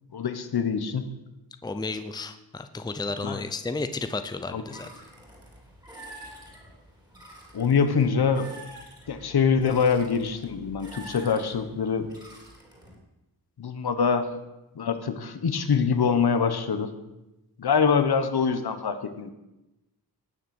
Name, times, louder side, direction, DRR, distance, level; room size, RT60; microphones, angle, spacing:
voice 1, 0.1-1.1 3.2-3.4 4.5-4.6 7.5-8.5 9.1-12.1 13.6-14.3 14.7-16.9 17.6-19.3, left 6 dB, 65° left, 10 dB, 1.3 m, -24 dB
voice 2, 1.6-4.9, left 3 dB, 10° left, 9 dB, 0.6 m, -32 dB
sound 1, 4.7-13.0, right 1 dB, 10° right, 3.2 m, -47 dB
18.5 x 6.7 x 7.8 m, 0.98 s
wide cardioid pair, 175°, 40 cm